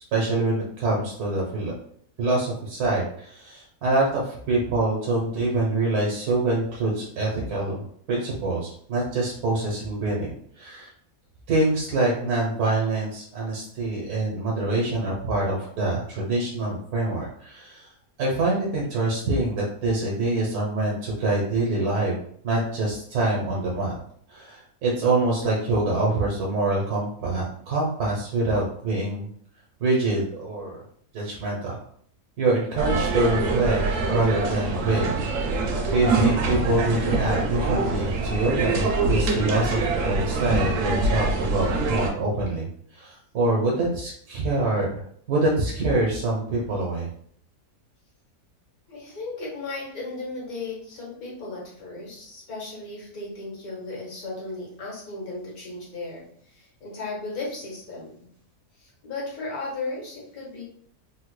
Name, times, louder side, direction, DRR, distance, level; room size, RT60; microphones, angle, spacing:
voice 1, 0.1-1.7 2.2-10.9 11.5-17.9 18.2-22.2 22.4-23.9 24.3-29.3 29.8-30.8 31.1-31.8 32.4-47.1, right 2 dB, 85° right, -3 dB, 1.3 m, -25 dB
sound 1, 32.8-42.1, right 3 dB, 65° right, 0.9 m, -25 dB
voice 2, 48.9-58.3 58.8-60.6, left 3 dB, 75° left, -4 dB, 1.6 m, -35 dB
3.5 x 2.1 x 3.0 m, 0.62 s
omnidirectional pair, 1.6 m